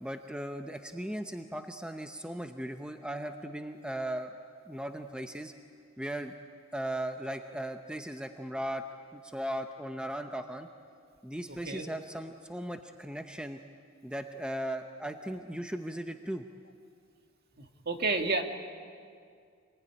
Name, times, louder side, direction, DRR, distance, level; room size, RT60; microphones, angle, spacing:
voice 1, 0.0-4.3 4.7-5.5 6.0-6.3 6.7-8.8 9.1-10.7 11.2-13.6 14.0-16.4, right 1 dB, 5° right, 6 dB, 0.7 m, -37 dB
voice 2, 17.9-18.4, right 3 dB, 50° right, 4 dB, 2.0 m, -29 dB
26.5 x 20.0 x 9.8 m, 2.3 s
head